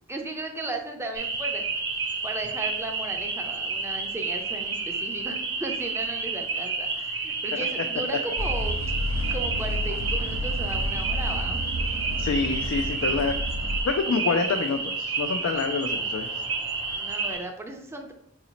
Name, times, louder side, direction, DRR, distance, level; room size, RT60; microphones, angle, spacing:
voice 1, 0.1-1.6 2.2-8.8 9.3-11.6 16.9-18.1, right 2 dB, 15° right, 3 dB, 0.5 m, -36 dB
sound 1, 1.2-17.4, right 4 dB, 65° right, 0.8 m, -30 dB
sound 2, 8.4-13.8, equal, 85° right, 0.5 m, -30 dB
voice 2, 12.2-13.3 13.8-16.3, left 4 dB, 85° left, 4 dB, 0.3 m, -27 dB
4.8 x 2.7 x 2.9 m, 0.70 s
head